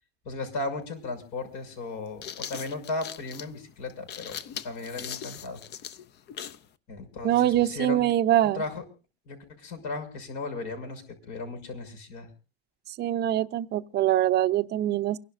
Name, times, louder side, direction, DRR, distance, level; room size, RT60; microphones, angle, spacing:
voice 1, 0.2-5.6 6.9-8.0 8.4-8.8 9.3-12.3, left 3 dB, 65° left, 6.2 m, -36 dB
sound 1, 0.8-0.9 1.9-6.7, left 9 dB, 35° left, 0.6 m, -40 dB
voice 2, 7.2-8.6 12.9-15.2, right 13 dB, 35° right, 0.6 m, -24 dB
29.5 x 11.5 x 2.5 m
cardioid pair, 155°, 32 cm